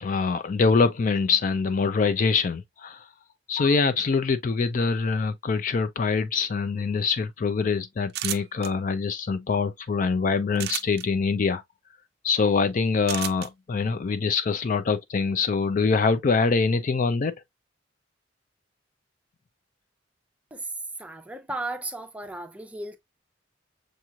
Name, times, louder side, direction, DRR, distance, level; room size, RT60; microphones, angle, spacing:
voice 1, 0.0-3.1 3.5-11.6 12.2-17.3, left 4 dB, 45° left, 0.4 m, -24 dB
sound 1, 8.1-8.7 10.5-11.0 13.1-13.5, right 13 dB, 55° right, 0.4 m, -31 dB
voice 2, 21.0-23.0, right 2 dB, 5° right, 0.6 m, -35 dB
6.5 x 3.0 x 2.3 m
head